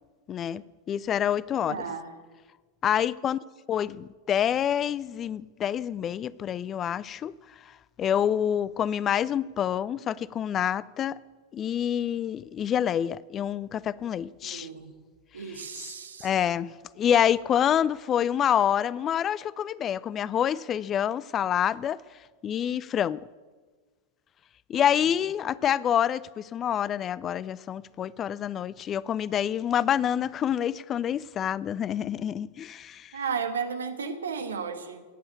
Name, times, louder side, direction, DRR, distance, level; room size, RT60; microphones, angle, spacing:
voice 1, 0.3-0.6 0.9-1.8 2.8-3.4 3.7-7.3 8.0-11.2 11.5-14.7 15.5-15.9 16.2-22.0 22.4-23.3 24.7-33.1, left 9 dB, 25° left, 0.3 m, -27 dB
voice 2, 1.7-2.1 14.4-14.9 15.3-16.3 24.7-25.0 33.1-35.0, right 6 dB, 70° right, 1.4 m, -34 dB
17.5 x 7.8 x 8.2 m
figure-of-eight pair, 90°, 0 cm